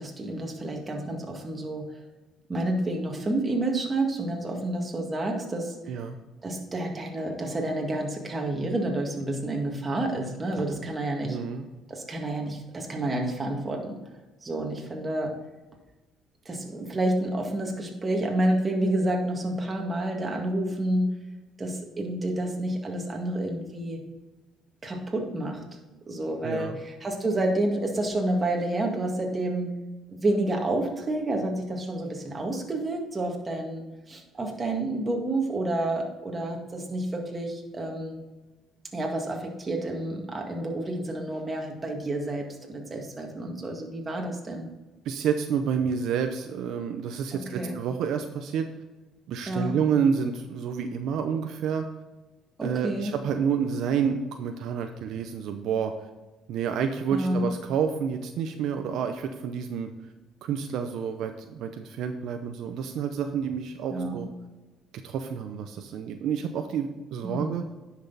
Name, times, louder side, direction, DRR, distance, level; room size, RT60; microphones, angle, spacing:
voice 1, 0.0-1.9 2.5-5.8 6.4-11.4 11.9-14.0 14.4-15.3 16.5-21.2 21.6-24.0 24.8-25.6 26.1-29.7 30.1-38.2 38.9-44.7 47.3-47.8 49.5-49.8 52.6-53.1 57.1-57.5 63.9-64.2 67.2-67.6, right 1 dB, 25° right, 1 dB, 2.0 m, -29 dB
voice 2, 11.2-11.6 26.4-26.8 45.0-48.7 49.3-51.9 52.6-55.9 56.5-59.9 60.4-64.3 64.9-67.6, right 7 dB, 70° right, 6 dB, 0.7 m, -29 dB
10.0 x 6.2 x 4.1 m, 1.2 s
cardioid pair, 105°, 0 cm